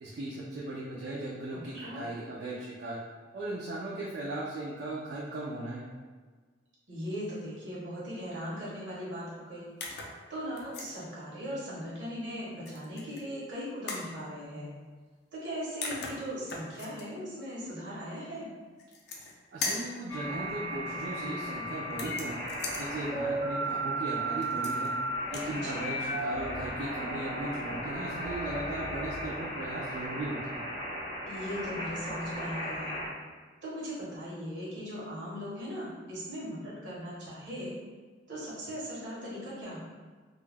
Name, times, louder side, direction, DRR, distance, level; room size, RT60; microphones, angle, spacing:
voice 1, 0.0-3.0 3.3-5.8 19.5-22.4 22.8-24.9 25.3-30.6, right 2 dB, 60° right, -5 dB, 0.4 m, -37 dB
voice 2, 1.5-2.0 6.9-9.7 10.3-14.7 15.3-18.5 25.6-25.9 31.3-33.0 33.6-37.7 38.3-39.8, equal, 75° right, -6 dB, 0.9 m, -39 dB
sound 1, 9.8-10.2 10.6-11.0 12.7-13.2 13.9-14.1 15.5-15.6 15.8-17.0 18.8-19.3 19.6-20.0 21.9-22.9 24.4-24.9 25.2-25.5, left 3 dB, 60° left, 0.4 m, -38 dB
sound 2, 20.1-33.1, right 1 dB, 25° left, 0.6 m, -35 dB
2.3 x 2.1 x 3.2 m, 1.4 s
head